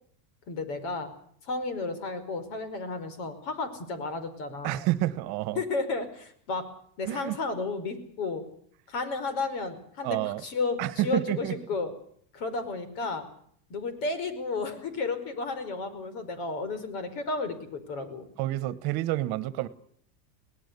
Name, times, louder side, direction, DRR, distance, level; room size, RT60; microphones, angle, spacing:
voice 1, 0.5-1.1 1.4-4.9 5.6-6.7 7.0-8.4 8.9-11.9 12.3-13.3 13.7-18.3, left 3 dB, 60° left, 5.2 m, -32 dB
voice 2, 4.6-5.6 7.0-7.4 10.0-10.4 10.8-11.6 18.4-19.7, right 16 dB, 45° right, 1.4 m, -29 dB
23.5 x 18.5 x 6.9 m
supercardioid pair, 145°, 50 cm